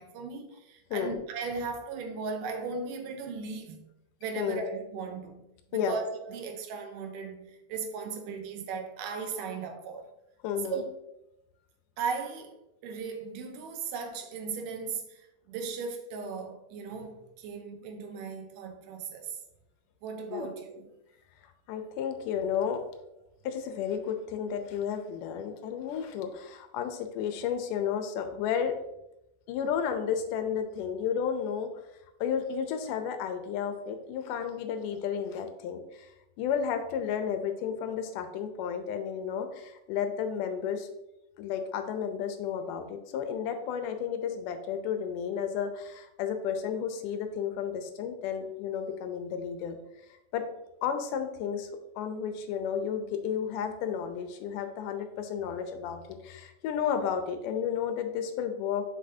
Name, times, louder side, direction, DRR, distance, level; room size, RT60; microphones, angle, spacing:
voice 1, 0.0-3.8 4.2-5.4 5.7-10.1 10.7-10.9 12.0-19.4 20.0-20.9, right 5 dB, 80° right, 2.3 m, -37 dB
voice 2, 10.4-10.8 20.3-20.5 21.7-22.8 23.4-28.8 29.5-31.7 32.2-36.1 36.4-40.9 41.4-49.8 50.3-50.4 50.8-51.7 52.0-58.8, left 7 dB, 80° left, 2.2 m, -32 dB
6.3 x 5.8 x 2.7 m
omnidirectional pair, 3.7 m